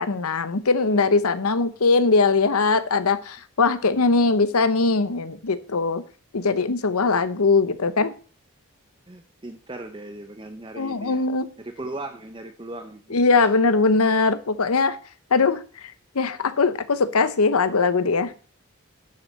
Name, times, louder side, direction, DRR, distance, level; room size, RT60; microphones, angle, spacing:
voice 1, 0.0-6.0 6.3-8.1 10.8-11.5 13.1-15.0 15.3-18.3, left 4 dB, 90° left, 13 dB, 0.9 m, -21 dB
voice 2, 0.8-1.2 9.1-11.3 11.6-13.2, right 2 dB, 20° right, 6 dB, 0.6 m, -38 dB
11.0 x 6.8 x 4.1 m, 0.38 s
head